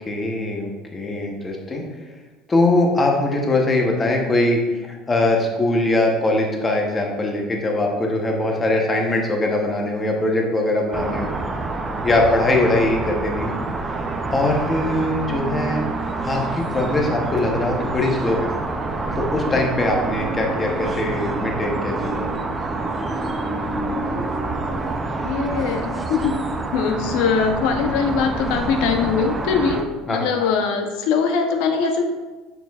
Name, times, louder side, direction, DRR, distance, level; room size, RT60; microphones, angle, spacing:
voice 1, 0.1-1.8 2.5-11.3 12.0-13.5 14.3-15.8 16.2-18.5 19.2-22.3 30.1-30.3, left 2 dB, 15° left, 1 dB, 0.8 m, -21 dB
sound 1, 10.9-29.8, right 3 dB, 15° right, 0.4 m, -27 dB
voice 2, 23.8-24.2 25.2-26.4 26.7-32.0, left 5 dB, 70° left, 4 dB, 0.6 m, -22 dB
6.7 x 6.3 x 2.4 m, 1.2 s
cardioid pair, 155°, 0 cm